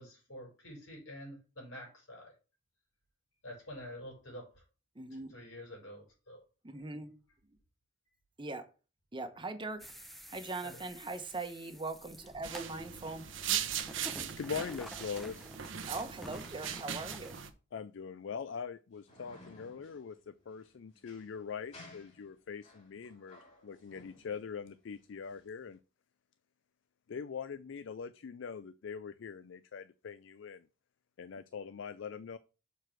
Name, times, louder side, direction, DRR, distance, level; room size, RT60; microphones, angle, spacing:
voice 1, 0.0-2.3 3.4-4.5 5.1-6.4 10.6-10.8, equal, 90° left, 5.2 m, -48 dB
voice 2, 4.9-5.4 6.6-7.1 8.4-8.7 9.1-9.9 10.3-13.3 14.1-14.3 15.9-17.4, right 3 dB, 25° right, 1.0 m, -41 dB
sound 1, 9.8-17.5, equal, ahead, 0.8 m, -50 dB
sound 2, 12.4-17.5, right 9 dB, 70° right, 1.0 m, -39 dB
voice 3, 14.4-15.5 17.7-25.8 27.1-30.7 31.2-32.4, left 6 dB, 65° left, 0.4 m, -42 dB
sound 3, 18.9-25.7, left 1 dB, 35° left, 3.0 m, -58 dB
6.9 x 4.6 x 6.0 m
head